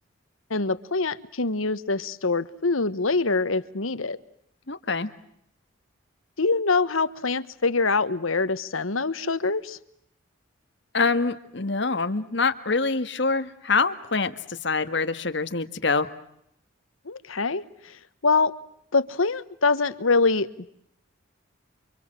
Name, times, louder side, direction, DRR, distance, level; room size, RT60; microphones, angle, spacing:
voice 1, 0.5-4.2 6.4-9.8 17.0-17.9 18.2-18.5 18.9-20.5, left 3 dB, 90° left, 14 dB, 1.3 m, -24 dB
voice 2, 4.7-5.1 10.9-16.1, left 4 dB, 60° left, 9 dB, 1.7 m, -25 dB
29.5 x 25.0 x 7.6 m, 0.74 s
head